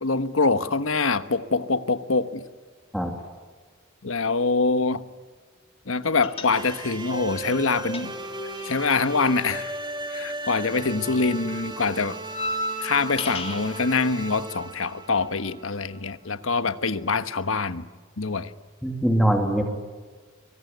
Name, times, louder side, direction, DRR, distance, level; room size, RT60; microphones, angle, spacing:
voice 1, 0.0-2.4 4.0-5.0 5.9-8.1 8.6-9.7 10.1-12.2 12.8-17.8 18.2-18.5, left 4 dB, 80° left, 1.3 m, -24 dB
sound 1, 6.2-7.0 7.2-10.6 10.9-13.8, left 2 dB, 30° left, 3.6 m, -35 dB
sound 2, 6.5-16.4, right 2 dB, 20° right, 2.3 m, -36 dB
voice 2, 18.8-19.6, right 1 dB, ahead, 2.8 m, -22 dB
24.5 x 24.5 x 9.4 m
head